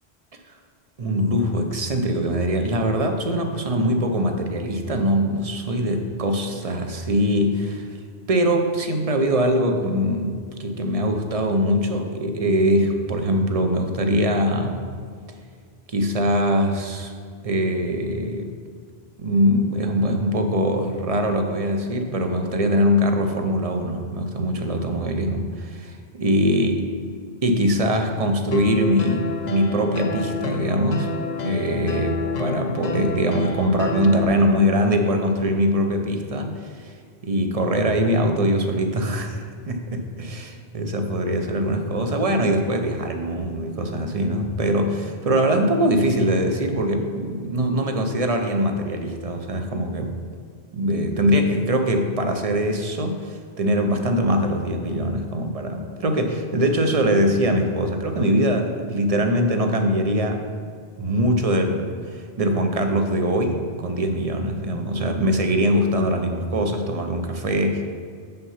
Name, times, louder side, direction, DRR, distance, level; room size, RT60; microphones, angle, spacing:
voice 1, 1.0-7.9 8.3-14.8 15.9-17.1 17.4-18.5 19.2-26.8 27.4-31.1 31.4-36.9 37.2-50.2 50.7-60.5 61.0-67.9, equal, 40° right, 4 dB, 0.7 m, -22 dB
sound 1, 28.5-34.3, left 3 dB, 50° left, 0.6 m, -28 dB
6.8 x 5.6 x 5.7 m, 2.1 s
omnidirectional pair, 1.1 m